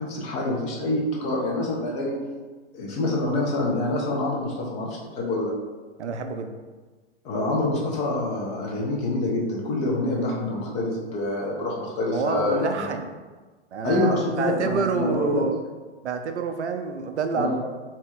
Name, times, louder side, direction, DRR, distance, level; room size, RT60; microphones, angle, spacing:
voice 1, 0.0-2.2 2.7-5.5 7.2-12.9 13.8-15.4 17.3-17.6, left 2 dB, 20° left, -2 dB, 0.4 m, -26 dB
voice 2, 6.0-6.5 12.1-13.1 13.7-15.6 16.0-17.6, right 5 dB, 75° right, 6 dB, 0.5 m, -27 dB
2.7 x 2.7 x 3.5 m, 1.3 s
figure-of-eight pair, 105°, 35 cm